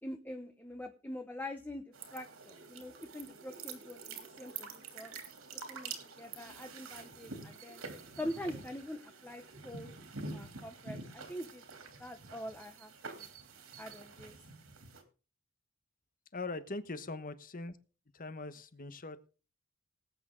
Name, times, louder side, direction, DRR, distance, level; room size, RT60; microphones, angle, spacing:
voice 1, 0.0-5.2 5.7-7.8 8.2-9.9 10.3-11.6 12.0-13.3 13.8-14.3, left 1 dB, 10° left, 5 dB, 1.0 m, -44 dB
sound 1, 1.9-15.0, right 4 dB, 85° right, 2.9 m, -47 dB
voice 2, 16.3-17.7 18.1-19.3, left 3 dB, 45° left, 11 dB, 1.2 m, -41 dB
19.0 x 8.7 x 3.8 m, 0.35 s
head